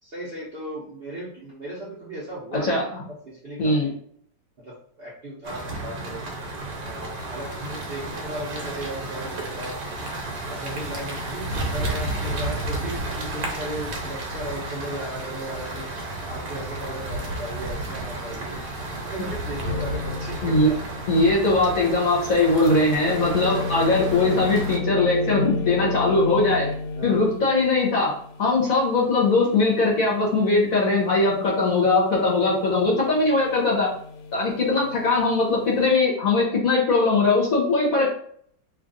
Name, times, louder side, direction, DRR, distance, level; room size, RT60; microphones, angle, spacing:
voice 1, 0.0-2.8 3.2-4.0 4.6-6.2 6.8-9.8 10.4-15.9 16.3-20.7 27.0-27.2, right 1 dB, 45° right, -6 dB, 0.8 m, -36 dB
voice 2, 2.5-2.8 3.6-3.9 20.4-20.7 21.1-26.7 27.0-33.9 34.3-38.1, left 3 dB, 55° left, -3 dB, 1.2 m, -20 dB
sound 1, 5.4-24.8, right 2 dB, 70° right, 1.3 m, -32 dB
sound 2, 19.6-35.9, left 3 dB, 85° left, 1.3 m, -34 dB
3.2 x 2.4 x 3.8 m, 0.62 s
omnidirectional pair, 1.9 m